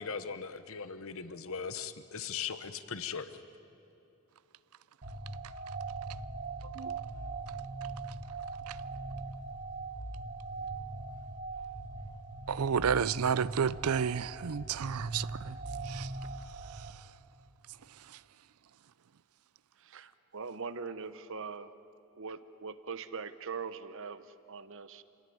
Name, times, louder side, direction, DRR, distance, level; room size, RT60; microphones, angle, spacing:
voice 1, 0.0-3.3, left 6 dB, 65° left, 1.0 m, -39 dB
sound 1, 5.0-16.9, right 3 dB, 45° right, 1.5 m, -40 dB
voice 2, 12.5-15.6 15.9-16.1, right 7 dB, 75° right, 0.5 m, -31 dB
voice 3, 19.8-21.7 22.2-25.0, right 5 dB, 60° right, 1.0 m, -42 dB
27.5 x 17.0 x 9.5 m
head